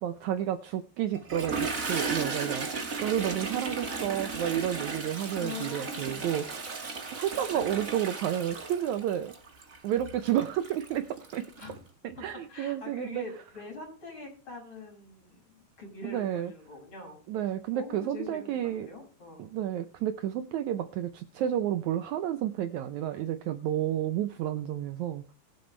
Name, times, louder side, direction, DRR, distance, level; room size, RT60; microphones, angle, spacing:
voice 1, 0.0-2.7 3.0-6.6 7.1-9.3 9.8-11.5 12.0-13.2 16.0-16.5 17.3-18.9 19.4-25.3, right 11 dB, 85° right, 9 dB, 1.6 m, -31 dB
Toilet flush, 1.1-11.7, right 4 dB, 30° right, 1.7 m, -35 dB
voice 2, 5.4-6.2 11.6-11.8 12.1-17.2 17.7-19.5, left 3 dB, 30° left, 1 dB, 6.6 m, -44 dB
22.0 x 8.0 x 3.3 m, 0.37 s
omnidirectional pair, 4.3 m